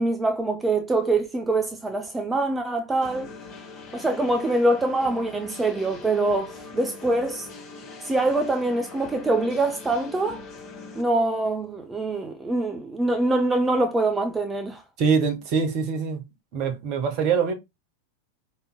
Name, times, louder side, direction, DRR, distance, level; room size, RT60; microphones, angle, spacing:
voice 1, 0.0-3.3 3.9-7.5 8.0-10.4 11.0-14.8, right 2 dB, 10° right, 0.8 m, -24 dB
sound 1, 3.0-11.0, left 3 dB, 30° left, 2.1 m, -42 dB
voice 2, 15.0-16.2 16.5-17.5, right 6 dB, 40° right, 1.5 m, -24 dB
5.4 x 4.1 x 2.3 m
figure-of-eight pair, 90°, 0 cm